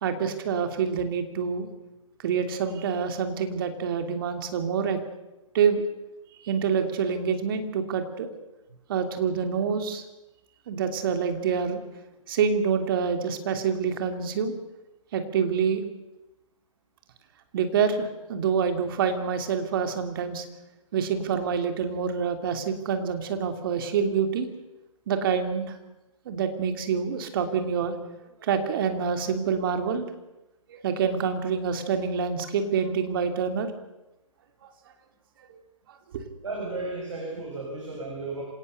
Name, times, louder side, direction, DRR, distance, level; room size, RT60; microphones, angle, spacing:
voice 1, 0.0-1.7 2.2-5.0 5.5-5.8 6.4-8.3 8.9-10.0 10.7-11.8 12.3-14.5 15.1-15.8 17.5-20.4 20.9-24.5 25.1-25.8 26.2-27.9 28.4-30.1 30.7-33.7 36.1-36.3, right 6 dB, 40° right, 6 dB, 3.1 m, -26 dB
voice 2, 36.4-38.4, right 2 dB, 65° right, -1 dB, 7.0 m, -34 dB
26.5 x 18.5 x 6.8 m, 0.98 s
figure-of-eight pair, 125°, 17 cm